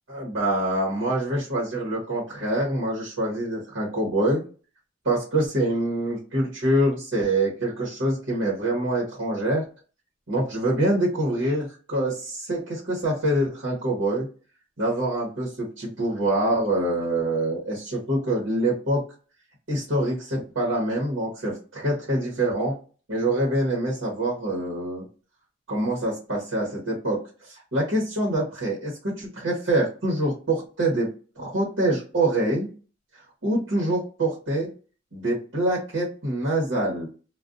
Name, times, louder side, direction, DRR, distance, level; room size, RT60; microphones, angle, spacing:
voice 1, 0.1-4.4 5.0-9.6 10.3-14.3 14.8-19.0 19.7-22.7 23.1-25.0 25.7-27.2 27.5-31.1 31.4-32.7 33.4-34.7 35.1-37.1, right 1 dB, 75° right, -3 dB, 1.0 m, -25 dB
2.4 x 2.3 x 2.4 m, 0.37 s
head